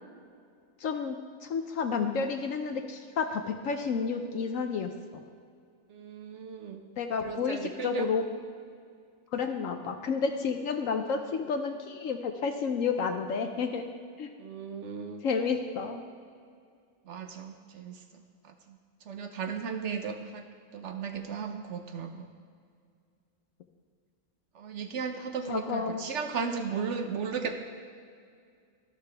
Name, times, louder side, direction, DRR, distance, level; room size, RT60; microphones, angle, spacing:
voice 1, 0.8-4.9 7.0-8.2 9.3-13.9 14.2-14.3 15.2-16.0 25.5-26.0, left 5 dB, 70° left, 6 dB, 1.0 m, -31 dB
voice 2, 5.9-6.8 7.2-8.1 14.4-15.2 17.0-18.8 19.0-20.5 20.7-22.3 24.5-27.6, right 6 dB, 60° right, 6 dB, 1.0 m, -36 dB
12.5 x 11.5 x 3.4 m, 2.2 s
omnidirectional pair, 1.5 m